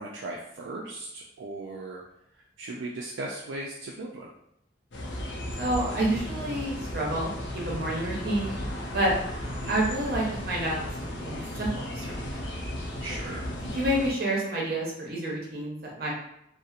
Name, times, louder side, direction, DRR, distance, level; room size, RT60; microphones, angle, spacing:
voice 1, 0.0-2.0 2.6-4.3 9.6-9.8 13.0-13.4, right 2 dB, 75° right, -3 dB, 0.3 m, -37 dB
sound 1, 4.9-14.1, left 1 dB, 70° left, 0.5 m, -35 dB
voice 2, 5.6-7.3 7.6-8.5 8.9-9.1 9.7-12.4 13.7-16.1, right 1 dB, 50° right, -3 dB, 0.7 m, -29 dB
2.7 x 2.0 x 2.4 m, 0.76 s
head